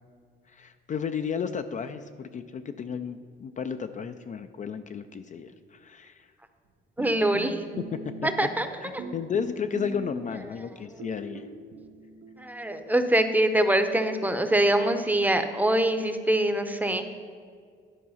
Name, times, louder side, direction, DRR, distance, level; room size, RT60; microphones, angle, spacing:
voice 1, 0.5-6.3 8.2-8.3 8.8-11.5, left 7 dB, 40° left, 9 dB, 0.4 m, -33 dB
voice 2, 7.0-7.6 8.2-9.0 12.4-17.1, right 1 dB, 10° right, 8 dB, 0.7 m, -24 dB
sound 1, 7.0-8.7 9.0-10.6 11.0-13.6, right 4 dB, 85° right, 0.9 m, -41 dB
11.0 x 4.6 x 5.6 m, 2.1 s
cardioid pair, 90°, 20 cm